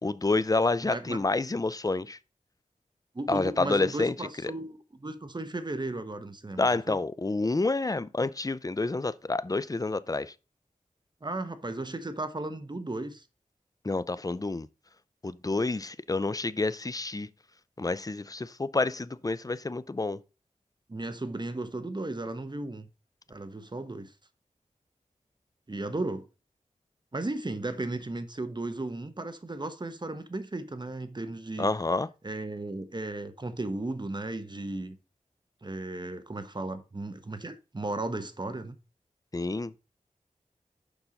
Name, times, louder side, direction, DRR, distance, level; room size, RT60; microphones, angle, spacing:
voice 1, 0.0-2.2 3.3-4.1 4.4-4.5 6.6-10.3 13.8-14.7 15.2-17.3 17.8-20.2 31.6-32.1 39.3-39.7, left 3 dB, 25° left, 0.6 m, -28 dB
voice 2, 0.8-1.2 3.1-7.0 11.2-13.2 20.9-22.9 23.3-24.1 25.7-26.2 27.1-31.7 32.2-35.0 35.6-38.7, right 2 dB, 35° right, 1.2 m, -35 dB
7.0 x 5.6 x 5.1 m
cardioid pair, 50°, 13 cm